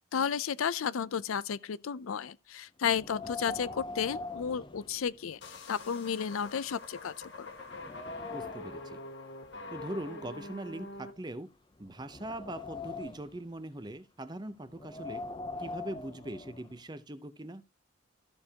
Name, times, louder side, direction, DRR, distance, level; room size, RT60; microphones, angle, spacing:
voice 1, 0.0-5.4 5.7-7.5, left 7 dB, 90° left, 0.5 m, -33 dB
Wind, 2.9-5.5 5.9-6.0 6.7-6.8 7.2-8.9 9.7-11.2 11.8-13.4 14.7-16.8, left 3 dB, 20° left, 0.5 m, -43 dB
sound 1, 5.4-11.1, left 2 dB, 60° left, 1.7 m, -45 dB
voice 2, 8.3-9.0 9.7-11.5 11.8-15.2 15.6-17.6, right 1 dB, 20° right, 0.6 m, -41 dB
13.5 x 6.6 x 2.9 m
head